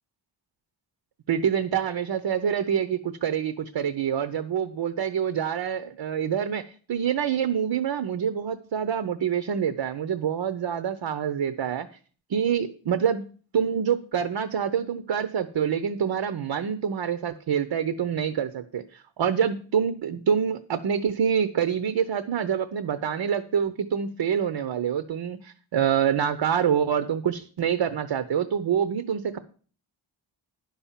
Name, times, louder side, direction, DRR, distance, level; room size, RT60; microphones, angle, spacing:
voice 1, 1.3-6.6 6.9-11.9 12.3-13.3 13.5-29.4, right 8 dB, 60° right, 11 dB, 0.8 m, -26 dB
10.5 x 5.7 x 7.3 m, 0.41 s
wide cardioid pair, 135°, 49 cm